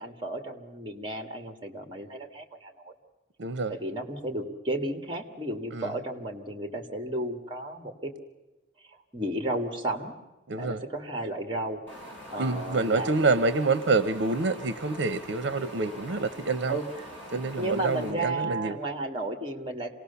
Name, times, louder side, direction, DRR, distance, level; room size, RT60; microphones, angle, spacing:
voice 1, 0.0-2.9 3.7-8.1 9.1-10.1 10.6-13.2 16.7-16.8 17.3-19.9, right 1 dB, 25° right, 5 dB, 2.1 m, -33 dB
voice 2, 3.4-3.7 5.7-5.9 10.5-10.8 12.4-16.8 17.3-18.8, right 3 dB, 80° right, 12 dB, 0.7 m, -27 dB
Wind, 11.9-18.1, equal, 10° left, 7.2 m, -44 dB
27.0 x 18.5 x 7.0 m, 1.1 s
head